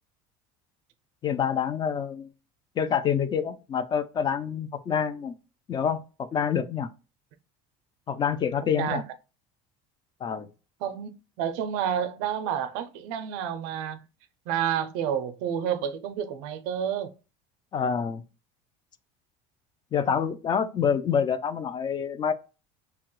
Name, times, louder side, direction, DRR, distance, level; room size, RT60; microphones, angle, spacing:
voice 1, 1.2-2.3 2.8-5.4 5.7-6.9 8.1-9.0 10.2-10.5 17.7-18.2 19.9-22.3, left 7 dB, 30° left, 0.4 m, -27 dB
voice 2, 10.8-14.0 14.5-17.1, right 9 dB, 75° right, 0.5 m, -29 dB
2.9 x 2.3 x 2.9 m
supercardioid pair, 115°, 16 cm